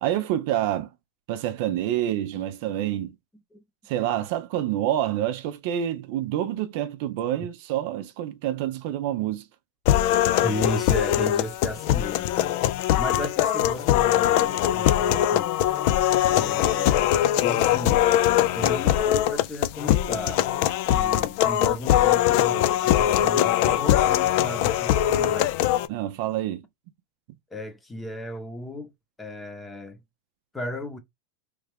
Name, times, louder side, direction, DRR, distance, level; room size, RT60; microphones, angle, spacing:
voice 1, 0.0-0.9 1.3-3.1 3.9-9.5 25.9-26.6, right 12 dB, 60° right, 0.5 m, -27 dB
sound 1, 9.9-25.9, left 12 dB, 60° left, 0.3 m, -22 dB
voice 2, 10.4-12.6 13.0-15.5 16.3-17.1 17.4-18.1 18.5-25.7 27.5-28.9 29.2-30.0 30.5-31.0, left 1 dB, 10° left, 0.8 m, -35 dB
3.2 x 2.4 x 3.3 m
supercardioid pair, 135°, 0 cm